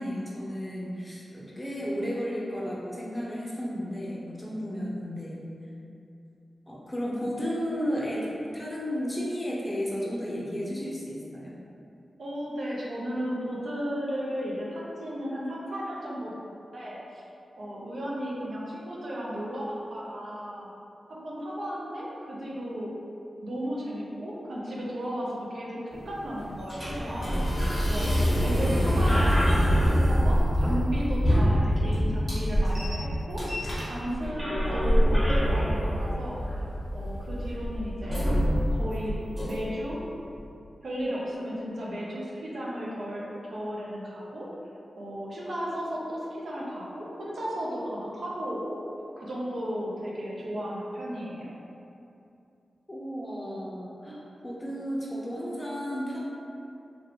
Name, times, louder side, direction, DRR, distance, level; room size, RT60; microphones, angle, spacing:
voice 1, 0.0-5.5 6.7-11.5 52.9-56.2, equal, 15° left, -6 dB, 0.6 m, -33 dB
voice 2, 12.2-17.2 17.6-19.6 19.9-20.7 21.1-23.0 23.4-27.6 27.9-28.1 28.4-33.4 33.8-34.5 34.7-36.4 36.9-38.2 38.7-39.2 39.4-40.0 40.8-44.5 45.0-48.8 49.2-51.5, equal, 65° right, -6 dB, 0.6 m, -34 dB
sound 1, 25.9-39.9, equal, 10° right, 1.2 m, -25 dB
3.0 x 2.5 x 2.9 m, 2.7 s
wide cardioid pair, 85°, 0 cm